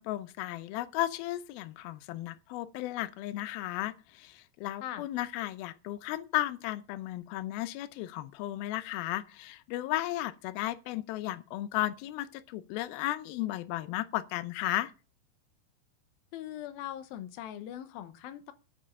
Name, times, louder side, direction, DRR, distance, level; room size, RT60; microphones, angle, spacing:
voice 1, 0.0-14.9, left 15 dB, 90° left, 2.1 m, -34 dB
voice 2, 16.3-18.5, left 12 dB, 75° left, 2.3 m, -41 dB
8.8 x 8.6 x 6.7 m
omnidirectional pair, 5.2 m